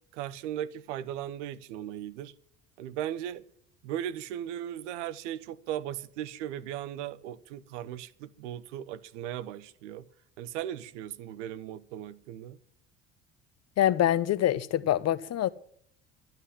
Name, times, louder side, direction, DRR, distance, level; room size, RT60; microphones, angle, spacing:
voice 1, 0.1-2.3 2.8-3.4 3.8-10.0 10.4-12.6, right 11 dB, 70° right, 1.0 m, -37 dB
voice 2, 13.8-15.5, left 12 dB, 45° left, 1.0 m, -25 dB
12.5 x 12.0 x 7.5 m
figure-of-eight pair, 60°, 38 cm